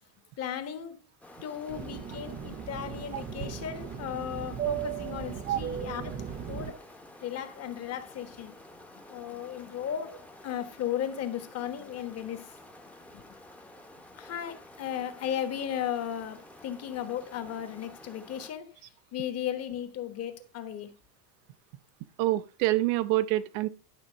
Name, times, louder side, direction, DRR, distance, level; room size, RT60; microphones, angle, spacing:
voice 1, 0.4-1.0 1.4-6.1 6.5-6.8 7.2-8.6 9.1-12.5 13.1-13.2 14.1-18.7 19.1-20.9, left 9 dB, 30° left, 1.3 m, -35 dB
sound 1, 1.2-18.5, left 1 dB, 5° left, 0.9 m, -51 dB
Fixed-wing aircraft airplane, 1.7-6.7, right 8 dB, 20° right, 0.4 m, -37 dB
voice 2, 22.2-23.7, right 16 dB, 65° right, 0.8 m, -26 dB
11.5 x 4.3 x 6.3 m
supercardioid pair, 150°, 48 cm